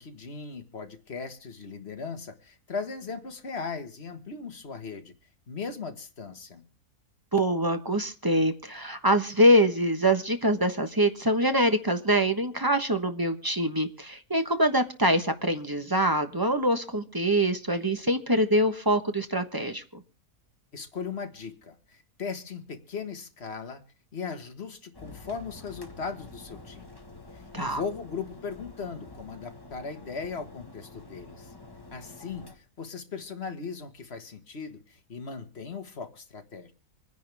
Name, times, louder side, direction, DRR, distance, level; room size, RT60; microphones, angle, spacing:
voice 1, 0.0-5.1 5.5-6.6 20.7-23.8 24.1-26.9 27.3-31.5 31.9-36.7, left 5 dB, 45° left, 7 dB, 1.8 m, -38 dB
voice 2, 7.3-20.0 27.5-27.8, right 1 dB, 15° right, 8 dB, 1.1 m, -24 dB
sound 1, 24.9-32.6, left 3 dB, 15° left, 1.6 m, -48 dB
26.0 x 10.5 x 3.5 m, 0.35 s
omnidirectional pair, 1.6 m